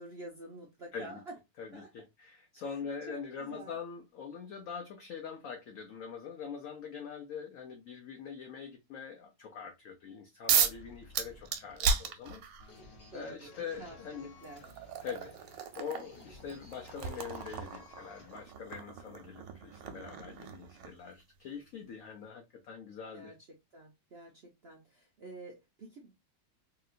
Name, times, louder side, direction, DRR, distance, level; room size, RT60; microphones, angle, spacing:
voice 1, 0.0-1.3 1.7-1.9 2.6-3.7 13.1-13.5 13.8-14.8 23.1-23.3 23.7-26.2, right 2 dB, 65° right, 0.6 m, -49 dB
voice 2, 1.6-12.4 13.1-14.3 15.0-15.3 15.7-23.3, left 6 dB, 70° left, 0.8 m, -43 dB
sound 1, 10.5-10.8 11.1-12.7 13.8-13.9 14.4-21.1, right 6 dB, 90° right, 1.3 m, -34 dB
sound 2, 10.7-18.6, left 2 dB, 40° left, 1.1 m, -55 dB
2.9 x 2.9 x 2.3 m
omnidirectional pair, 2.0 m